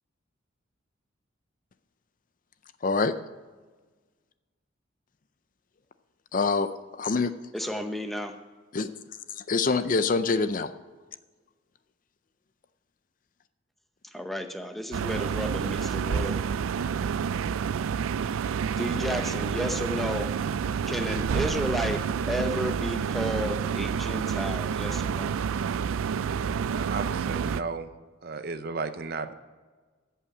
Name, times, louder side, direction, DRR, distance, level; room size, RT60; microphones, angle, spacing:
voice 1, 2.8-3.1 6.3-7.3 8.7-8.9 9.5-10.7, left 4 dB, 40° left, 0.5 m, -25 dB
voice 2, 7.5-8.3 14.1-16.4 18.8-20.4 20.9-22.0 22.3-25.4, equal, ahead, 0.7 m, -32 dB
sound 1, 14.9-27.6, right 7 dB, 90° right, 0.3 m, -29 dB
voice 3, 26.7-27.9 28.2-29.3, right 4 dB, 50° right, 0.6 m, -34 dB
15.5 x 5.7 x 6.1 m
head